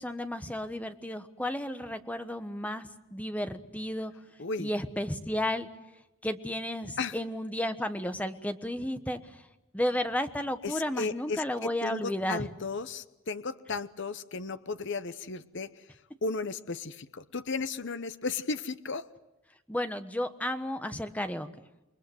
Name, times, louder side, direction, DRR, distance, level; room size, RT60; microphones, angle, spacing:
voice 1, 0.0-4.1 4.6-5.7 6.2-9.4 9.7-12.5 19.7-21.5, left 1 dB, 5° left, 9 dB, 1.2 m, -33 dB
voice 2, 4.4-4.7 7.0-7.2 10.6-11.4 11.8-15.8 16.2-19.1, left 4 dB, 55° left, 13 dB, 0.9 m, -35 dB
28.5 x 22.0 x 7.9 m, 0.94 s
head